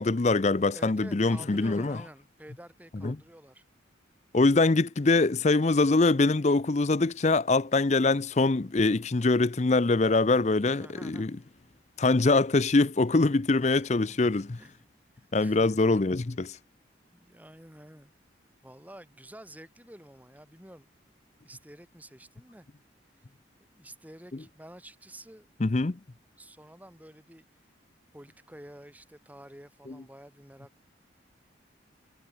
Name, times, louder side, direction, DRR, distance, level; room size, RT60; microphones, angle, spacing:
voice 1, 0.0-2.0 3.0-3.2 4.3-11.3 12.0-14.6 15.3-16.6 25.6-26.0, left 3 dB, 35° left, 0.6 m, -23 dB
voice 2, 0.7-3.6 10.8-11.5 13.6-14.2 14.6-14.8 15.1-15.8 17.1-18.1 18.6-20.9 21.4-22.7 23.2-23.3 23.6-25.5 26.4-27.4 28.1-30.7, right 1 dB, 10° right, 3.3 m, -50 dB
head